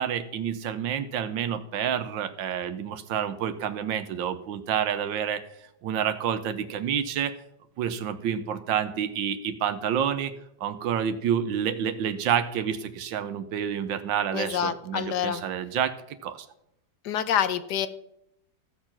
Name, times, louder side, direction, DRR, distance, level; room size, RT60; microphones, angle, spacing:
voice 1, 0.0-5.4 5.8-7.3 7.8-10.3 10.6-16.5, right 8 dB, 80° right, 10 dB, 1.4 m, -28 dB
voice 2, 14.3-15.4 17.0-17.9, left 9 dB, 65° left, 13 dB, 1.2 m, -27 dB
15.0 x 6.7 x 5.9 m, 0.79 s
omnidirectional pair, 2.1 m